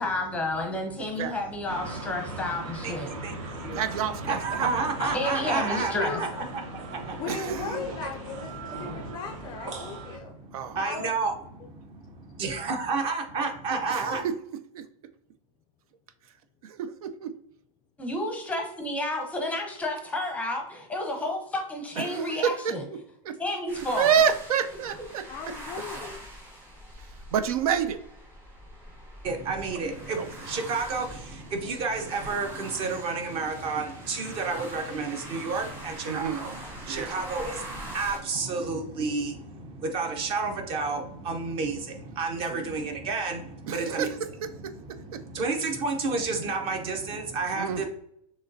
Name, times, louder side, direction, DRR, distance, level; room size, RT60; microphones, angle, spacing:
voice 1, 0.0-3.1 5.1-6.2 18.0-22.8 23.4-24.1, left 1 dB, 5° left, 2 dB, 0.7 m, -31 dB
sound 1, 1.7-10.2, right 2 dB, 55° right, 1.1 m, -39 dB
voice 2, 2.8-3.8 4.3-7.2 8.0-8.1 8.6-9.2 10.2-14.2 29.2-44.1 44.6-47.8, right 4 dB, 30° right, 5 dB, 0.7 m, -31 dB
voice 3, 3.7-4.7 7.3-8.0 10.5-10.8 13.9-14.3 14.7-14.9 16.6-17.3 22.0-22.7 23.2-23.4 24.0-25.3 27.3-28.0 30.2-30.3 36.1-36.4 36.9-37.2 42.5-42.8 43.7-44.2 44.4-44.7 45.1-45.2 47.6-47.8, right 8 dB, 75° right, 11 dB, 0.5 m, -28 dB
voice 4, 5.0-5.5 5.8-6.4 7.2-10.3 10.8-11.1 25.3-26.2, left 5 dB, 25° left, 4 dB, 0.3 m, -37 dB
sound 2, 23.7-38.2, right 1 dB, 10° right, 1.2 m, -43 dB
6.5 x 3.0 x 2.6 m, 0.74 s
supercardioid pair, 155°, 19 cm